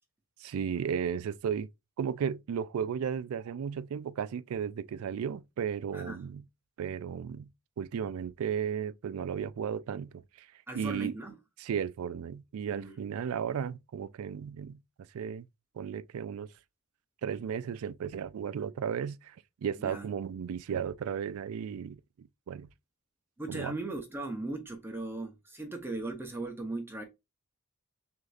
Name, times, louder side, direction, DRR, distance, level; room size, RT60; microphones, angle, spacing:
voice 1, 0.4-1.7 2.0-6.4 6.8-7.5 7.8-10.5 10.7-11.1 11.6-14.8 15.1-15.5 15.8-16.5 17.2-22.7 23.5-23.8, right 7 dB, 70° right, 0.3 m, -34 dB
voice 2, 10.7-11.4 12.7-13.0 19.8-20.1 23.4-27.0, right 2 dB, 10° right, 0.6 m, -38 dB
6.3 x 2.7 x 2.3 m
head